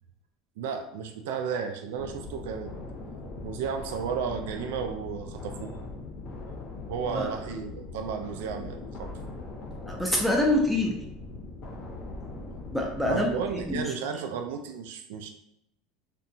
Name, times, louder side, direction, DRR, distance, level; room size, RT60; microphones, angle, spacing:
voice 1, 0.6-2.7 3.4-5.8 6.9-9.1 13.0-15.3, right 6 dB, 80° right, 5 dB, 0.3 m, -33 dB
sound 1, 2.0-13.8, left 3 dB, 50° left, 0.6 m, -40 dB
voice 2, 9.9-11.0 12.7-13.3 13.7-13.9, left 1 dB, ahead, -1 dB, 0.3 m, -25 dB
2.7 x 2.1 x 2.6 m, 0.81 s
supercardioid pair, 150°, 0 cm